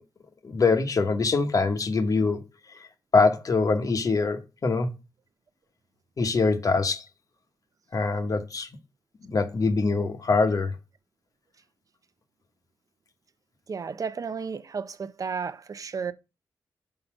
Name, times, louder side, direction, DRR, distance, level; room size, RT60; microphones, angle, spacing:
voice 1, 0.4-2.4 3.1-4.9 6.2-7.0 7.9-8.7 9.2-10.7, left 4 dB, 50° left, 1.0 m, -23 dB
voice 2, 13.7-16.1, right 5 dB, 50° right, 0.7 m, -33 dB
5.4 x 3.8 x 5.8 m
cardioid pair, 65°, 7 cm